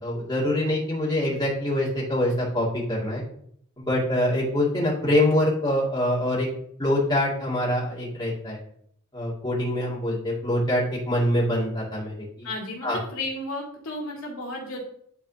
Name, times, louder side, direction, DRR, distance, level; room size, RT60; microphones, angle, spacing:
voice 1, 0.0-3.2 3.8-6.5 6.8-8.6 9.1-12.5 12.8-13.0, left 1 dB, 20° left, -6 dB, 2.3 m, -24 dB
voice 2, 12.4-14.8, left 2 dB, 70° left, -2 dB, 2.1 m, -33 dB
11.0 x 4.1 x 2.8 m, 0.66 s
head